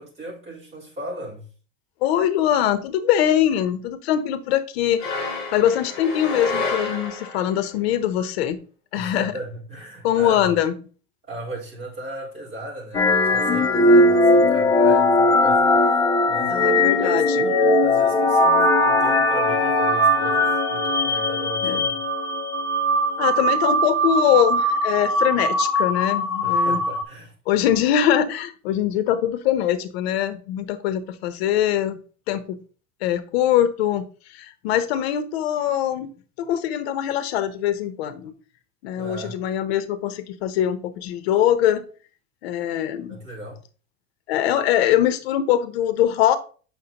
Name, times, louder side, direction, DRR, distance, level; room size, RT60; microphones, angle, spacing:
voice 1, 0.0-1.5 8.9-10.6 11.3-22.0 26.4-27.3 38.9-39.4 43.1-43.6, right 1 dB, 20° right, 4.0 m, -37 dB
voice 2, 2.0-8.6 8.9-9.3 10.0-10.7 16.5-17.5 21.6-21.8 23.2-26.8 27.5-32.0 32.3-32.6 33.0-34.0 34.3-36.1 36.4-38.3 38.8-41.8 42.4-43.2 44.3-46.4, left 11 dB, 75° left, 0.8 m, -22 dB
sound 1, 5.0-7.6, left 3 dB, 40° left, 4.0 m, -29 dB
sound 2, 12.9-27.0, left 1 dB, 10° left, 0.5 m, -19 dB
8.1 x 5.9 x 2.9 m
supercardioid pair, 175°, 31 cm